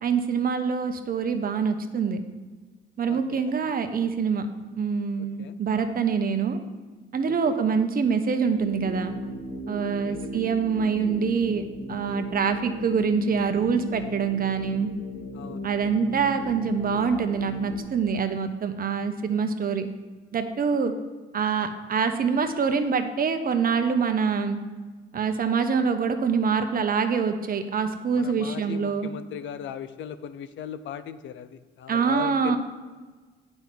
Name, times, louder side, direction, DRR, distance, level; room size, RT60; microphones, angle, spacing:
voice 1, 0.0-2.2 3.0-4.5 4.8-6.6 7.1-9.1 9.7-14.9 15.6-19.9 20.3-20.9 21.3-24.6 25.1-29.1 31.9-32.6, right 6 dB, 45° right, 7 dB, 0.9 m, -25 dB
voice 2, 3.1-3.5 5.2-5.6 7.3-7.6 10.0-10.6 15.3-15.7 28.2-32.6, left 9 dB, 70° left, 12 dB, 0.6 m, -39 dB
sound 1, 8.6-17.8, left 2 dB, 40° left, 2.2 m, -36 dB
8.9 x 5.5 x 5.9 m, 1.3 s
cardioid pair, 90°, 20 cm